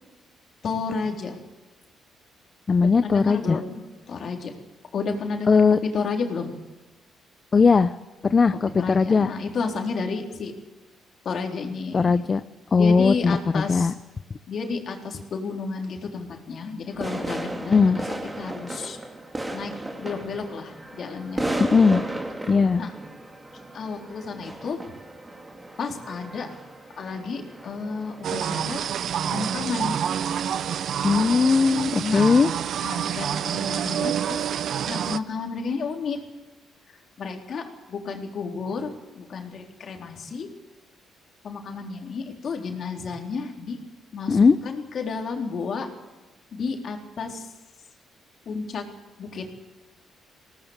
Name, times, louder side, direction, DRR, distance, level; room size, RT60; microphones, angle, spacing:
voice 1, 0.6-1.4 2.8-4.6 4.9-6.6 8.8-10.5 11.2-12.1 12.7-13.9 14.5-19.0 19.5-21.5 22.8-22.9 23.7-24.9 25.8-26.5 27.0-28.9 29.3-30.0 32.0-32.3 32.8-34.5 34.9-36.2 36.9-40.5 41.4-43.8 44.1-45.9 46.5-47.5 48.5-48.9 49.2-49.5, left 4 dB, 55° left, 3 dB, 3.9 m, -31 dB
voice 2, 2.7-3.6 5.5-5.8 7.5-7.9 8.2-9.3 11.9-12.4 12.7-13.9 17.7-18.0 21.6-22.0 22.5-22.8 31.0-32.5 44.3-44.6, left 5 dB, 35° left, 12 dB, 0.7 m, -19 dB
sound 1, 16.9-28.7, right 1 dB, 15° right, 3.5 m, -35 dB
sound 2, 28.2-35.2, right 9 dB, 65° right, 0.9 m, -27 dB
21.0 x 18.5 x 8.2 m, 1.1 s
cardioid pair, 90°, 0 cm